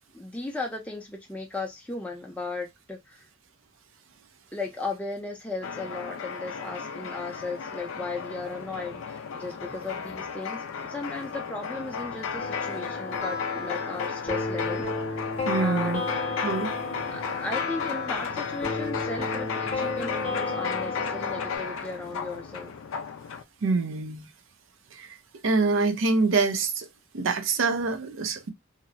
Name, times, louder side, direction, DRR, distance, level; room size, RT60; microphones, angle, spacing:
voice 1, 0.1-3.3 4.5-14.9 15.6-16.1 17.1-22.8, left 3 dB, 5° left, 0.5 m, -36 dB
sound 1, 5.6-23.4, left 6 dB, 65° left, 0.4 m, -34 dB
sound 2, 12.4-21.6, left 3 dB, 35° left, 0.8 m, -33 dB
voice 2, 15.5-16.0 16.4-16.7 23.6-24.3 24.9-25.1 25.4-26.9 27.1-28.5, right 4 dB, 65° right, 0.5 m, -25 dB
2.7 x 2.0 x 2.4 m
head